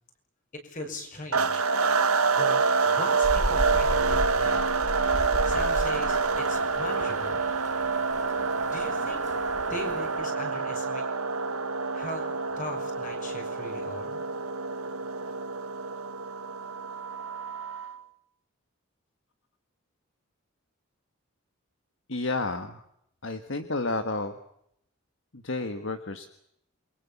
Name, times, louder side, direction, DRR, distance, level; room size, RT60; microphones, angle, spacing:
voice 1, 0.6-1.6 2.3-2.6 2.8-4.7 5.4-7.4 8.7-9.2 9.6-11.0 11.9-12.2 12.6-14.2, left 1 dB, 35° left, 4 dB, 6.3 m, -39 dB
sound 1, 1.3-18.0, right 4 dB, 85° right, 1.6 m, -27 dB
Rain, 3.2-10.2, right 1 dB, 30° right, 1.4 m, -35 dB
voice 2, 22.1-22.8 23.2-24.4 25.3-26.3, left 3 dB, 55° left, 9 dB, 1.5 m, -31 dB
28.0 x 23.0 x 7.1 m, 0.76 s
head